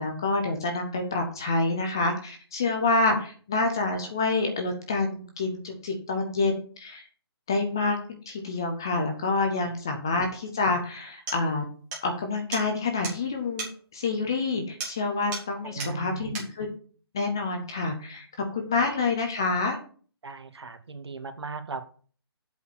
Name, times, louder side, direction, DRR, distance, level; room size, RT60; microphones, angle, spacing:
voice 1, 0.0-7.0 7.5-8.0 8.3-11.6 12.0-13.7 13.9-16.7 17.1-18.3 18.5-19.8, left 3 dB, 10° left, 4 dB, 0.4 m, -27 dB
sound 1, 10.7-10.8 11.3-11.4 11.9-12.1 12.5-12.6 13.0-13.2 13.6-13.8 14.8-15.0 15.3-15.5 15.8-15.9 16.3-16.5, right 4 dB, 10° right, 2.1 m, -35 dB
voice 2, 15.6-16.3 20.2-21.8, right 4 dB, 80° right, 8 dB, 1.8 m, -37 dB
8.1 x 5.1 x 7.0 m, 0.42 s
hypercardioid pair, 180°, 14 cm